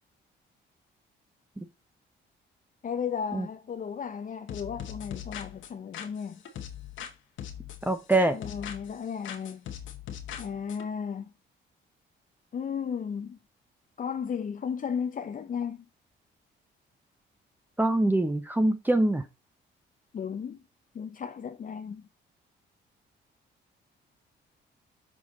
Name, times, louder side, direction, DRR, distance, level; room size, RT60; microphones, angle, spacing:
voice 1, 2.8-6.4 8.3-9.7 10.4-11.3 12.5-13.4 14.0-15.8 20.1-20.6 20.9-22.1, left 7 dB, 45° left, 0.7 m, -34 dB
sound 1, 4.5-7.1 7.4-9.0 9.2-10.9, left 9 dB, 75° left, 1.3 m, -40 dB
voice 2, 7.8-8.4 17.8-19.2, right 2 dB, 10° right, 0.9 m, -24 dB
6.2 x 4.6 x 3.7 m
cardioid pair, 90°, 20 cm